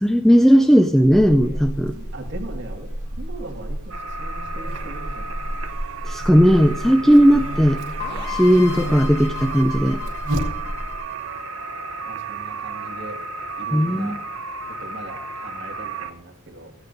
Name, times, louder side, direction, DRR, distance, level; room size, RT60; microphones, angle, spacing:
voice 1, 0.0-1.9 6.0-7.8 8.3-10.0 13.7-14.2, equal, ahead, 6 dB, 0.3 m, -16 dB
Buzz, 1.0-11.0, equal, 85° right, 1.8 m, -31 dB
voice 2, 1.9-5.7 7.3-7.7 8.1-8.4 9.9-10.5 12.0-13.2 13.6-14.2 14.8-16.7, right 2 dB, 55° right, 2 dB, 1.9 m, -40 dB
sound 1, 3.9-16.1, right 3 dB, 70° right, 0.9 m, -33 dB
sound 2, 8.0-11.7, left 10 dB, 50° left, 1.7 m, -36 dB
16.0 x 14.5 x 2.6 m, 0.87 s
head